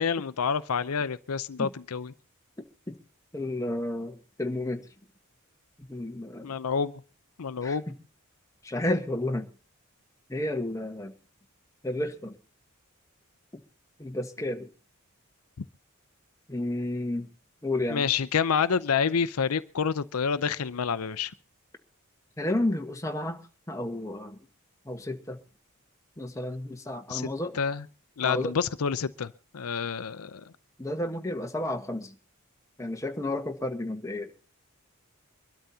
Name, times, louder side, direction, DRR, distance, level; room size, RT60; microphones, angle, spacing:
voice 1, 0.0-2.1 6.4-7.0 7.4-7.8 15.6-15.7 17.9-21.3 27.1-27.3 27.5-27.8 28.2-30.4, left 6 dB, 80° left, 0.6 m, -28 dB
voice 2, 3.3-4.9 5.9-6.5 7.6-7.9 8.6-9.5 10.3-11.1 11.8-12.4 14.0-14.7 16.5-17.3 17.6-18.1 22.4-23.4 23.7-24.4 24.8-25.4 26.2-27.5 28.2-28.5 30.8-32.1 32.8-34.3, left 1 dB, 15° left, 1.3 m, -31 dB
24.5 x 12.5 x 2.8 m
head